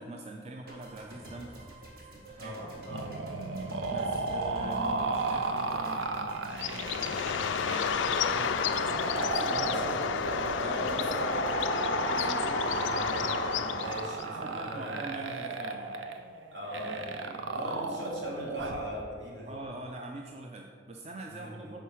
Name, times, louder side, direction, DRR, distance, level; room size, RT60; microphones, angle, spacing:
voice 1, 0.0-1.8 2.1-2.5 3.9-6.6 7.0-9.8 10.4-10.7 14.3-16.0 19.5-21.8, right 2 dB, 35° right, 2 dB, 0.4 m, -44 dB
sound 1, 0.7-12.9, right 1 dB, 50° right, 1.5 m, -48 dB
voice 2, 2.4-3.1 3.5-3.9 9.6-10.0 10.6-15.0 16.5-19.6 21.3-21.8, equal, 75° right, -4 dB, 2.0 m, -40 dB
sound 2, 2.9-18.9, right 3 dB, 90° right, 0.5 m, -34 dB
Bird, 6.5-14.2, left 7 dB, 85° left, 0.3 m, -31 dB
6.5 x 4.5 x 5.6 m, 2.1 s
head